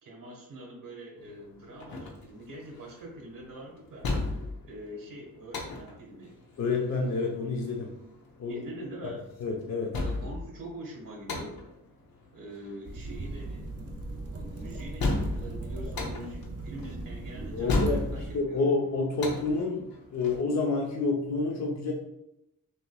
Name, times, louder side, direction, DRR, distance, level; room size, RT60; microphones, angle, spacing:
voice 1, 0.0-4.1 4.6-6.3 8.5-9.3 10.0-11.7 12.3-13.8 14.3-18.6, right 1 dB, 65° right, -1 dB, 1.5 m, -44 dB
sound 1, 1.2-20.4, left 2 dB, 85° left, 1.0 m, -35 dB
voice 2, 6.6-7.9 8.4-8.6 9.0-9.1 9.4-10.0 17.5-18.1 18.3-21.9, left 3 dB, 50° left, 0 dB, 0.8 m, -29 dB
sound 2, 12.8-18.4, right 2 dB, 45° right, 0.8 m, -38 dB
6.2 x 3.0 x 2.3 m, 0.82 s
wide cardioid pair, 105°, 35 cm